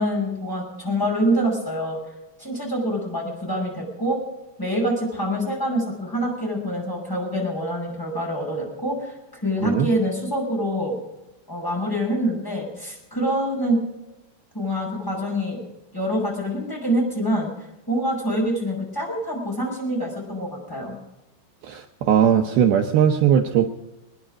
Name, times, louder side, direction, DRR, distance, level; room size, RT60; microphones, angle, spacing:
voice 1, 0.0-2.0 2.4-4.2 4.6-11.0 11.5-13.8 14.5-15.6 15.9-17.5 17.9-20.9, equal, 5° left, -2 dB, 5.2 m, -25 dB
voice 2, 21.6-23.7, right 9 dB, 75° right, 4 dB, 2.3 m, -19 dB
25.5 x 10.0 x 5.1 m, 0.96 s
omnidirectional pair, 5.4 m